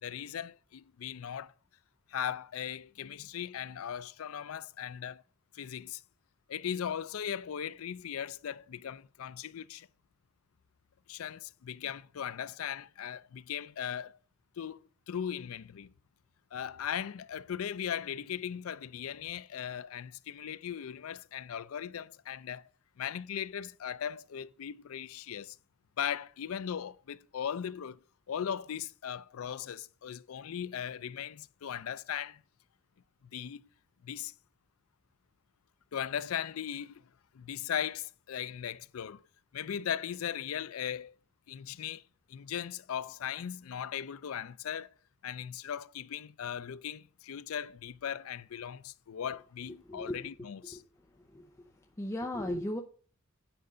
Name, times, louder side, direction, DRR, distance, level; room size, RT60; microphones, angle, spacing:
voice 1, 0.0-1.5 2.1-5.2 5.5-6.0 6.5-9.9 11.1-14.2 14.6-15.9 16.5-22.7 23.0-25.6 26.0-28.0 28.3-32.4 33.3-33.6 34.0-34.3 35.9-37.0 37.3-39.2 39.5-41.1 41.5-42.0 42.3-44.9 45.2-50.8, left 9 dB, 85° left, 0.4 m, -38 dB
voice 2, 51.3-51.7 52.0-52.8, left 1 dB, 15° left, 0.7 m, -36 dB
9.0 x 5.3 x 5.0 m
head